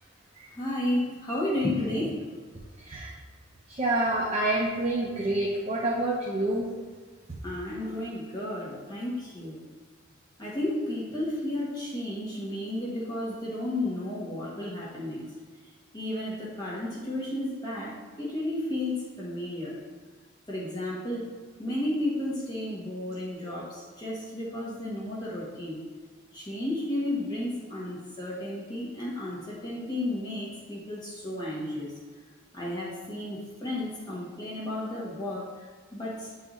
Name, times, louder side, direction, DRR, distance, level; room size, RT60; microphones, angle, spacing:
voice 1, 0.5-2.2 7.4-9.6 10.4-15.3 15.9-19.8 20.5-21.3 21.6-25.8 26.3-31.9 32.5-36.4, left 1 dB, 20° left, -7 dB, 1.2 m, -33 dB
voice 2, 3.7-6.7, right 1 dB, 30° right, -4 dB, 0.7 m, -27 dB
8.9 x 3.9 x 3.0 m, 1.5 s
head